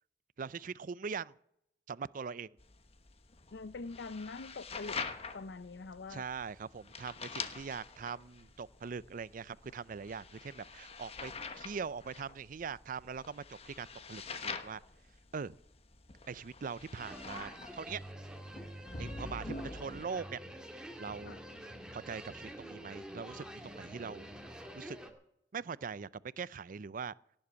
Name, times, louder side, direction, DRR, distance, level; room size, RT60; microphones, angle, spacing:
voice 1, 0.4-1.3 1.9-2.6 6.1-11.3 11.6-14.8 15.3-15.6 16.3-17.5 17.8-18.0 19.0-20.4 21.0-21.4 21.9-24.3 24.8-25.0 25.5-26.1 26.4-27.1, right 5 dB, 50° right, 0.4 m, -41 dB
sound 1, 2.6-20.0, left 4 dB, 35° left, 1.2 m, -46 dB
voice 2, 3.5-5.0 5.3-6.3 21.3-21.4, left 3 dB, 75° left, 0.6 m, -44 dB
sound 2, 17.0-25.1, equal, 5° right, 2.0 m, -47 dB
18.0 x 7.9 x 8.3 m
head